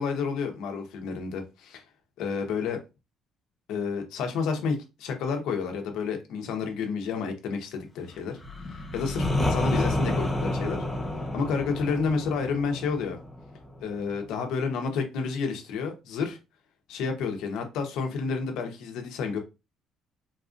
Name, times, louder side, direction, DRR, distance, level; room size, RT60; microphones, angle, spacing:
voice 1, 0.0-1.8 2.2-2.8 3.7-8.4 8.7-10.8 11.3-13.2 13.8-16.4 16.9-19.4, left 5 dB, 80° left, 4 dB, 0.9 m, -30 dB
sound 1, 8.4-14.1, left 1 dB, 5° left, 1.0 m, -30 dB
3.9 x 2.5 x 2.5 m, 0.26 s
cardioid pair, 130°, 0 cm